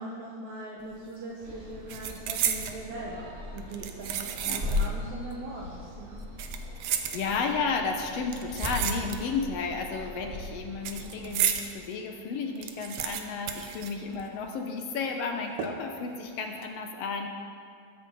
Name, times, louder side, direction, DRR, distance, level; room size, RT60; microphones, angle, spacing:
voice 1, 0.0-6.2, right 2 dB, 65° right, -4 dB, 2.4 m, -40 dB
sound 1, 0.8-1.1 1.4-2.8 3.6-5.0 5.3-5.4 6.2-7.6 8.3-9.5 9.8-11.7 12.1-12.2 12.4-14.5 14.8-14.9 15.6-16.0 16.4-16.6, right 9 dB, 90° right, 1.4 m, -33 dB
sound 2, 1.4-11.4, left 2 dB, 20° right, 2.0 m, -38 dB
voice 2, 7.1-17.3, left 5 dB, 70° left, 3 dB, 1.5 m, -32 dB
20.5 x 9.1 x 4.1 m, 2.4 s
omnidirectional pair, 4.0 m